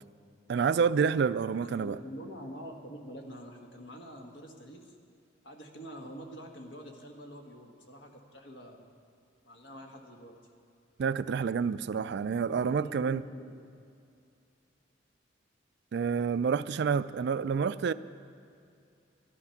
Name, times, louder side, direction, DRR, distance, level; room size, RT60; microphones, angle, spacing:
voice 1, 0.5-2.0 11.0-13.2 15.9-17.9, right 6 dB, 60° right, 15 dB, 0.3 m, -28 dB
voice 2, 1.6-4.9 5.4-8.9 9.4-10.4 12.4-13.5, equal, 70° left, 3 dB, 1.5 m, -46 dB
12.0 x 11.5 x 5.8 m, 2.5 s
head